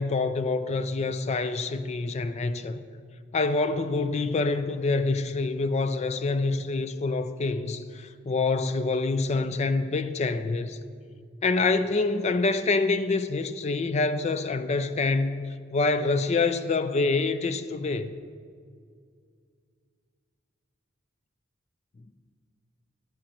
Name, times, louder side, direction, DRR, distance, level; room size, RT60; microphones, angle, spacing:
voice 1, 0.0-2.8 3.3-10.8 11.4-15.4 15.7-18.1, left 3 dB, 35° left, 0.4 m, -26 dB
11.0 x 4.4 x 7.6 m
head